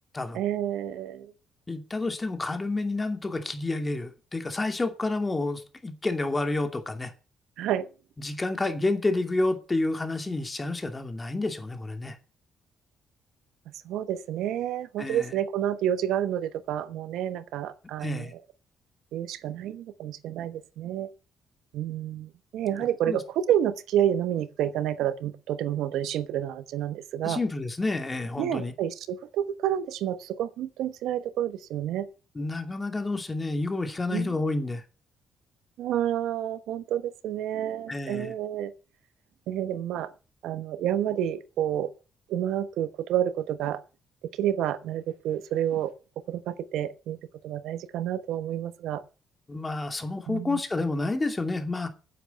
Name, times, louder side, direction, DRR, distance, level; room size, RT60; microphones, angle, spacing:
voice 1, 0.3-1.3 7.6-7.9 13.8-18.3 19.1-21.1 21.7-27.4 28.4-32.1 34.1-34.3 35.8-38.7 39.5-40.1 40.4-41.9 42.3-43.8 44.3-45.9 46.3-47.2 47.4-49.0 50.3-50.6, right 11 dB, 85° right, 1.1 m, -29 dB
voice 2, 1.7-7.1 8.2-12.2 15.0-15.3 18.0-18.3 23.0-23.2 27.2-28.7 32.4-34.8 37.9-38.3 49.5-51.9, left 2 dB, 20° left, 2.6 m, -29 dB
9.9 x 7.9 x 8.2 m
cardioid pair, 90°, 0 cm